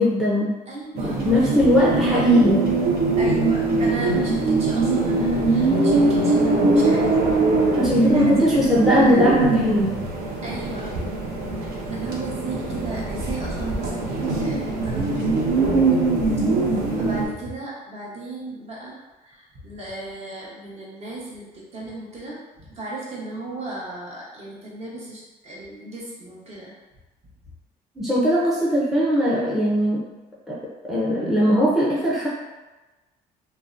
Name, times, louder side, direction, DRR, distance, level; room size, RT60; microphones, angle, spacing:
voice 1, 0.0-0.5 1.2-2.6 7.7-9.9 28.0-30.0 30.5-30.6 30.9-32.3, equal, ahead, -7 dB, 0.5 m, -19 dB
voice 2, 0.7-2.6 3.2-7.4 7.7-8.3 8.9-9.0 10.4-11.0 11.5-15.4 16.4-26.7, right 2 dB, 40° right, -5 dB, 0.8 m, -36 dB
sound 1, 1.0-17.3, right 3 dB, 70° right, 0.5 m, -22 dB
2.6 x 2.1 x 2.4 m, 1.1 s
cardioid pair, 110°, 17 cm